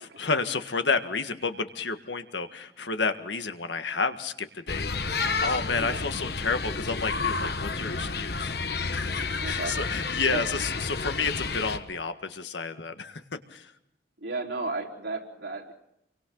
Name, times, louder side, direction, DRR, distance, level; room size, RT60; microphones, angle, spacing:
voice 1, 0.2-5.1 5.4-8.5 8.9-13.7, left 4 dB, 85° left, 8 dB, 1.7 m, -30 dB
sound 1, 4.7-11.8, left 4 dB, 60° left, 1.3 m, -30 dB
voice 2, 9.4-9.8 10.2-10.4 14.2-15.7, right 3 dB, 85° right, -1 dB, 4.4 m, -34 dB
29.0 x 24.0 x 4.0 m, 0.81 s
head